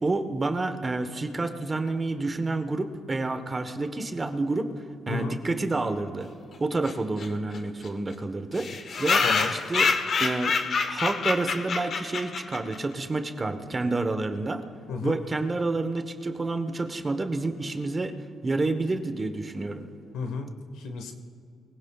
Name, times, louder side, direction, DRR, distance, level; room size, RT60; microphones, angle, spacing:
voice 1, 0.0-4.7 5.1-6.3 6.6-8.7 9.0-9.3 9.5-9.9 10.2-10.6 10.9-14.6 15.0-18.1 18.4-19.9, right 2 dB, 25° right, 7 dB, 1.1 m, -29 dB
sound 1, 6.8-6.9 7.2-7.3 7.5-7.6 7.8-7.9 8.5-12.8, left 4 dB, 50° left, 1.1 m, -26 dB
voice 2, 14.9-15.2 20.1-21.1, left 5 dB, 85° left, 5 dB, 1.4 m, -33 dB
23.5 x 16.5 x 2.4 m, 2.7 s
cardioid pair, 90°, 0 cm